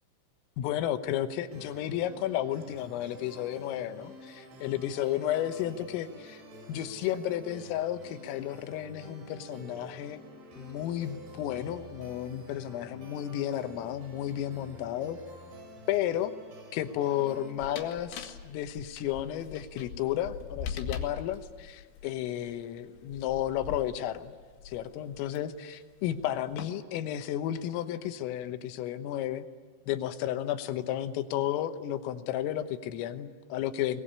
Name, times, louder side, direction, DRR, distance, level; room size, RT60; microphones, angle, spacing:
voice 1, 0.6-6.4 6.7-10.2 10.6-15.2 15.9-16.3 16.7-24.3 24.7-29.5 29.9-34.0, left 11 dB, 90° left, 9 dB, 3.8 m, -32 dB
sound 1, 1.5-17.5, right 1 dB, 65° right, 7.4 m, -49 dB
sound 2, 17.6-25.4 26.1-26.7, left 7 dB, 65° left, 3.8 m, -41 dB
23.0 x 21.0 x 10.0 m, 1.4 s
omnidirectional pair, 5.8 m